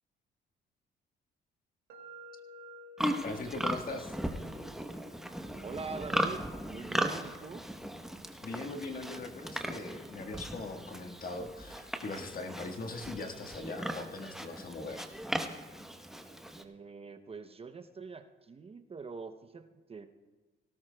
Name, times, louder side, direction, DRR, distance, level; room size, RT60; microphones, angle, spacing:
sound 1, 1.9-9.8, equal, 80° right, 2.2 m, -56 dB
Livestock farm animals working animals, 3.0-16.6, right 1 dB, ahead, 0.9 m, -37 dB
voice 1, 3.2-4.1 8.4-15.1, left 3 dB, 45° left, 4 dB, 1.4 m, -40 dB
voice 2, 5.6-7.6 16.5-20.1, right 4 dB, 30° right, 8 dB, 0.7 m, -44 dB
17.5 x 17.5 x 2.2 m, 1.2 s
cardioid pair, 90°, 20 cm